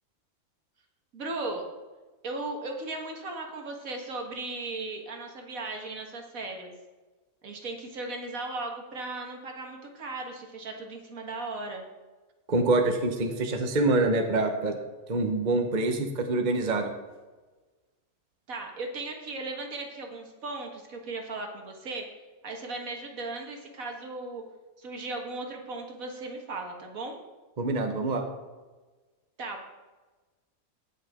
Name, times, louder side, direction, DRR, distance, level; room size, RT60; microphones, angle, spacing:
voice 1, 1.1-1.7 2.2-6.7 7.4-11.8 18.5-22.1 22.4-24.4 24.8-27.2 29.4-29.7, right 2 dB, 70° right, 2 dB, 1.9 m, -37 dB
voice 2, 12.5-14.8 15.1-16.9 27.6-28.2, right 2 dB, 35° right, 5 dB, 1.0 m, -25 dB
17.5 x 6.2 x 3.6 m, 1.3 s
omnidirectional pair, 1.5 m